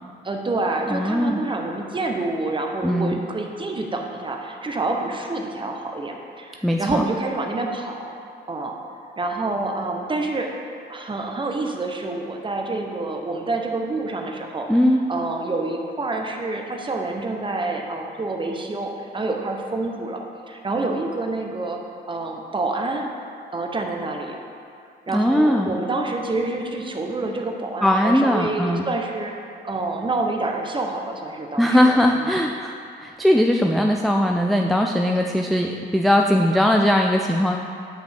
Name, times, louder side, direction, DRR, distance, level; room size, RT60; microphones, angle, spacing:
voice 1, 0.2-8.1 8.5-8.8 9.2-10.5 10.9-14.7 15.1-20.2 20.5-23.1 23.5-24.4 25.1-29.3 29.6-32.3, right 2 dB, 25° right, 2 dB, 0.9 m, -27 dB
voice 2, 0.9-1.4 2.8-3.2 6.6-7.0 14.7-15.0 25.1-25.8 27.8-28.9 31.6-37.6, equal, ahead, 2 dB, 0.3 m, -19 dB
8.9 x 5.2 x 3.5 m, 2.4 s
cardioid pair, 90°, 20 cm